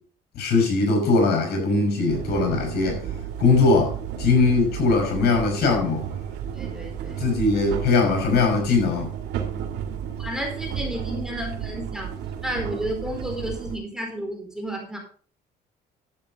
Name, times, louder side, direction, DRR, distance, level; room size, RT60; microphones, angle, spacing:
voice 1, 0.4-3.0 3.4-6.0 7.2-9.1, left 3 dB, 70° left, 5.7 m, -20 dB
sound 1, 2.1-13.8, right 8 dB, 85° right, 2.4 m, -32 dB
voice 2, 6.5-7.4 10.2-12.1 12.4-15.0, equal, 5° right, 4.3 m, -32 dB
12.0 x 8.8 x 4.1 m
cardioid pair, 110°, 17 cm